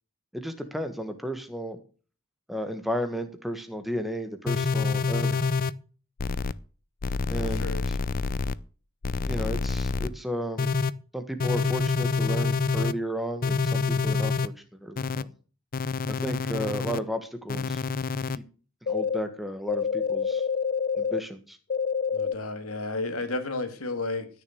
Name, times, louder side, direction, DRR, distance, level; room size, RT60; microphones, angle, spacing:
voice 1, 0.3-1.8 2.5-5.4 7.3-8.0 9.3-10.7 11.1-14.5 14.8-15.3 16.1-17.8 18.9-20.4 21.0-21.6, equal, ahead, 8 dB, 1.6 m, -33 dB
sound 1, 4.5-5.7 6.2-6.5 7.0-8.5 9.0-10.1 10.6-10.9 11.4-12.9 13.4-14.5 15.0-15.2 15.7-17.0 17.5-18.4 18.9-19.2 19.7-21.2 21.7-22.3, left 4 dB, 45° left, 0.5 m, -27 dB
voice 2, 7.4-7.9 22.1-24.3, left 2 dB, 80° left, 9 dB, 2.0 m, -32 dB
13.5 x 6.6 x 6.5 m, 0.38 s
head